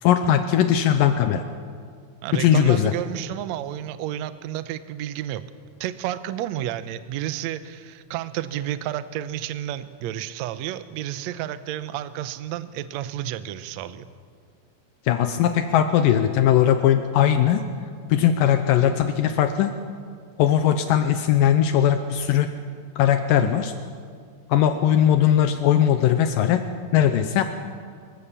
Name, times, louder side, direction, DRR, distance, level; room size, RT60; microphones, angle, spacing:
voice 1, 0.0-1.4 2.3-2.9 15.1-17.6 18.1-19.7 20.4-22.5 23.0-23.7 24.5-26.6 26.9-27.4, left 10 dB, 80° left, 8 dB, 2.4 m, -19 dB
voice 2, 2.2-5.4 5.8-14.1, right 12 dB, 80° right, 13 dB, 1.6 m, -31 dB
25.0 x 15.0 x 7.4 m, 2.1 s
omnidirectional pair, 4.1 m